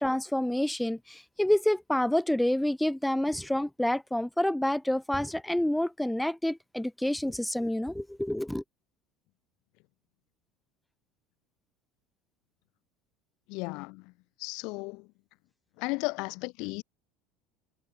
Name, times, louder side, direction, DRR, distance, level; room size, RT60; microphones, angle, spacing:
voice 1, 0.0-8.6, left 1 dB, 5° left, 2.6 m, -28 dB
voice 2, 13.5-14.1 14.4-15.1 15.8-16.8, left 27 dB, 60° left, 4.8 m, -35 dB
hypercardioid pair, 70°, 0 cm